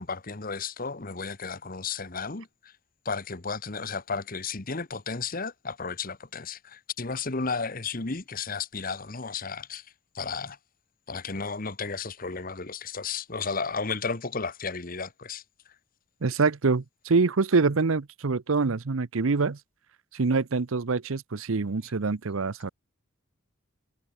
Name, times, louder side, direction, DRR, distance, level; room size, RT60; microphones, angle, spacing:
voice 1, 0.0-2.5 3.0-9.8 10.1-10.6 11.1-15.4, left 4 dB, 40° left, 1.3 m, -33 dB
voice 2, 16.2-19.6 20.1-22.7, right 4 dB, 75° right, 0.7 m, -25 dB
head